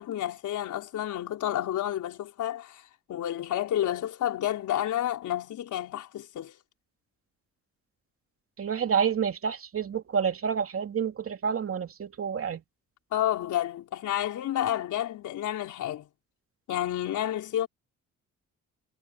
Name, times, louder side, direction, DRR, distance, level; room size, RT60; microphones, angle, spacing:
voice 1, 0.0-6.5 13.1-16.1 16.7-17.7, left 12 dB, 75° left, 4.4 m, -30 dB
voice 2, 8.6-12.6, right 7 dB, 50° right, 2.7 m, -28 dB
cardioid pair, 90°, 30 cm